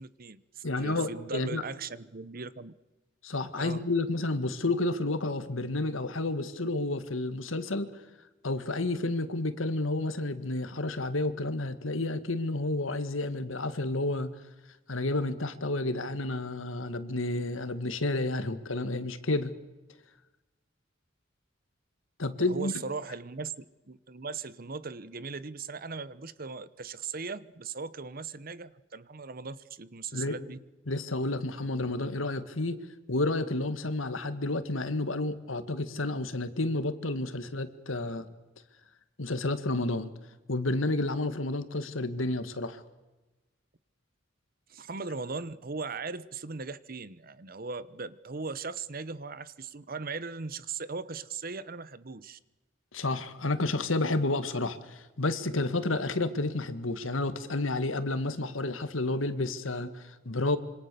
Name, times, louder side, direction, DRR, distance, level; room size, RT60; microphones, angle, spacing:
voice 1, 0.0-2.7 3.6-3.8 22.5-30.6 44.7-52.4, right 4 dB, 50° right, 0.9 m, -39 dB
voice 2, 0.6-1.6 3.2-7.9 8.4-14.3 14.9-19.5 22.2-22.7 30.1-30.4 30.9-32.8 33.1-38.3 39.2-40.1 40.5-42.8 52.9-60.6, left 2 dB, 90° left, 1.8 m, -30 dB
26.5 x 25.5 x 6.9 m
head